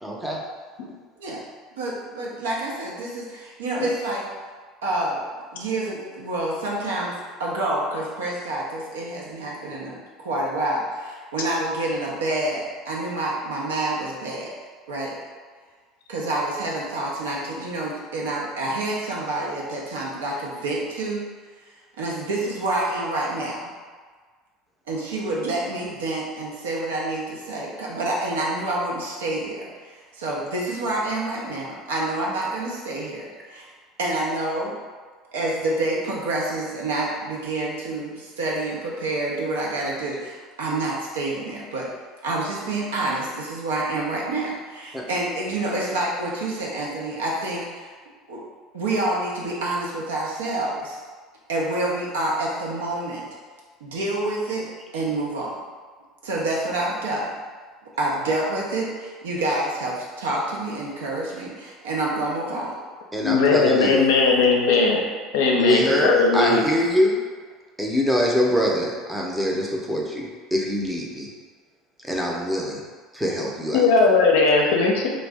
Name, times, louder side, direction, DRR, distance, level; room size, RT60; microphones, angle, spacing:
voice 1, 0.0-0.4 44.9-45.0 63.1-64.0 65.6-67.2 67.8-71.3 72.0-72.8 73.1-73.9, equal, 5° right, -2 dB, 0.6 m, -24 dB
voice 2, 1.8-4.2 4.8-5.2 5.5-7.1 7.4-14.5 14.9-15.1 16.1-21.3 22.0-23.7 24.9-33.7 34.0-34.7 35.3-41.9 42.2-47.9 48.3-48.4 48.7-51.0 51.5-53.3 53.8-54.7 54.9-55.6 56.2-57.3 58.0-62.8, right 2 dB, 80° right, -4 dB, 0.6 m, -28 dB
voice 3, 63.2-65.0 65.3-66.6 73.7-75.1, left 4 dB, 75° left, 0 dB, 0.5 m, -18 dB
2.6 x 2.1 x 3.4 m, 1.5 s
hypercardioid pair, 75°, 0 cm